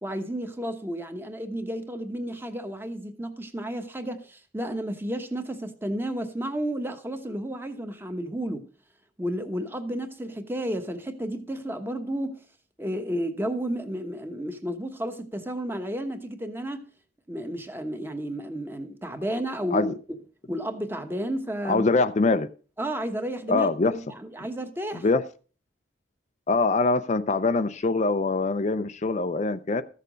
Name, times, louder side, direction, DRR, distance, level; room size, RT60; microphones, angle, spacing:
voice 1, 0.0-8.7 9.2-12.4 12.8-16.9 17.3-20.2 20.5-21.9 22.8-23.7 24.1-25.0, right 1 dB, 10° right, 1.1 m, -32 dB
voice 2, 21.6-22.5 23.5-23.9 25.0-25.2 26.5-29.8, left 3 dB, 40° left, 0.5 m, -23 dB
14.5 x 6.7 x 5.1 m
head